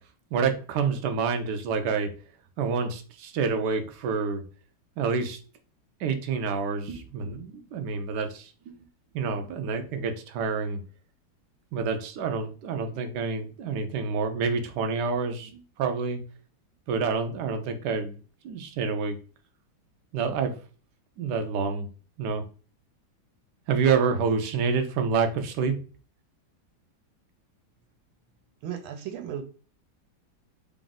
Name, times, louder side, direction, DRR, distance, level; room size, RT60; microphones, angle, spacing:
voice 1, 0.3-2.1 2.6-4.4 5.0-5.4 6.0-8.8 9.1-10.8 11.7-16.2 16.9-18.2 18.4-19.2 20.1-20.5 21.2-21.9 22.2-22.4 23.7-25.8, right 5 dB, 70° right, 6 dB, 1.0 m, -28 dB
voice 2, 28.6-29.4, right 9 dB, 90° right, 6 dB, 1.5 m, -35 dB
3.5 x 2.5 x 3.8 m, 0.37 s
omnidirectional pair, 2.2 m